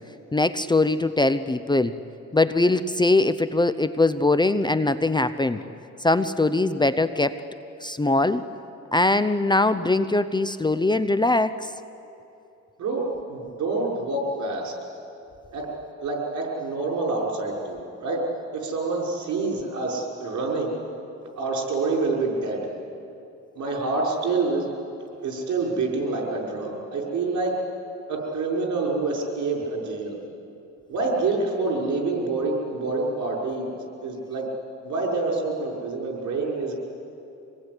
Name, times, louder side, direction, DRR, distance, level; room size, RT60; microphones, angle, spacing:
voice 1, 0.3-2.0 2.3-5.6 6.0-7.4 7.8-8.4 8.9-11.7, left 2 dB, 15° left, 12 dB, 0.7 m, -21 dB
voice 2, 12.8-14.7 15.5-15.6 16.0-18.2 18.5-20.8 21.4-22.6 23.6-24.7 25.2-27.5 28.1-30.1 30.9-33.7 34.0-34.5 34.8-36.7, right 3 dB, 70° right, -1 dB, 6.1 m, -27 dB
26.0 x 19.0 x 9.8 m, 2.8 s
cardioid pair, 90°, 30 cm